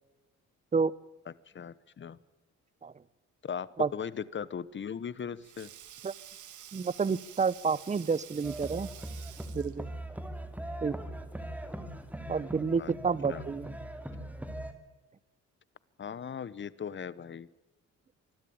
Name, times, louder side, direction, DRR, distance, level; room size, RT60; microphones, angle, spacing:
voice 1, 1.5-2.2 3.4-5.7 12.8-12.9 13.3-13.4 16.0-17.5, left 7 dB, 40° left, 19 dB, 1.0 m, -38 dB
Sink (filling or washing), 4.8-9.9, right 11 dB, 80° right, 2.5 m, -50 dB
voice 2, 6.7-8.9 9.5-9.9 10.8-11.0 12.3-13.7, right 5 dB, 25° right, 20 dB, 0.8 m, -29 dB
sound 1, 8.4-14.7, right 1 dB, 5° right, 2.6 m, -40 dB
25.0 x 12.5 x 8.7 m, 1.1 s
cardioid pair, 90°, 30 cm